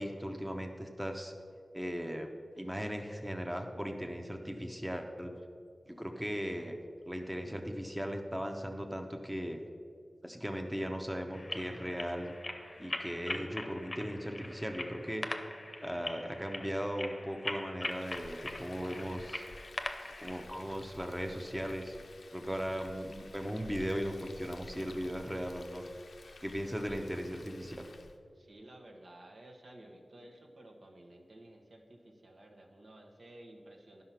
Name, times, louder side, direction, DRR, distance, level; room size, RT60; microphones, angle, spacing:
voice 1, 0.0-1.3 1.7-2.3 2.6-5.3 5.9-6.8 7.1-9.6 10.2-12.3 12.8-15.3 15.8-19.5 20.2-21.9 22.3-25.8 26.4-27.9, equal, 5° right, 4 dB, 0.8 m, -37 dB
sound 1, 11.3-20.4, left 2 dB, 35° left, 0.7 m, -42 dB
Frying (food), 17.8-28.2, left 3 dB, 85° left, 0.5 m, -52 dB
voice 2, 28.3-34.0, right 1 dB, 70° right, 1 dB, 1.2 m, -54 dB
10.5 x 5.7 x 5.8 m, 2.2 s
wide cardioid pair, 65°, 0 cm